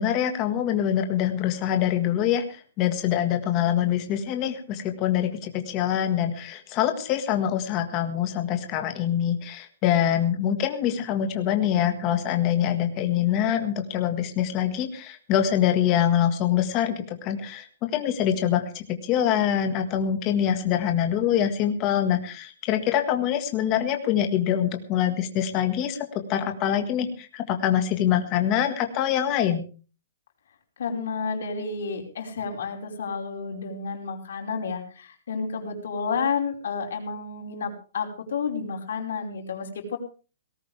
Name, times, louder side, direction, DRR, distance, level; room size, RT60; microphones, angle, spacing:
voice 1, 0.0-29.6, left 10 dB, 20° left, 7 dB, 1.7 m, -24 dB
voice 2, 30.8-40.0, left 5 dB, 60° left, 2 dB, 4.9 m, -31 dB
18.5 x 17.0 x 3.4 m, 0.36 s
hypercardioid pair, 180°, 0 cm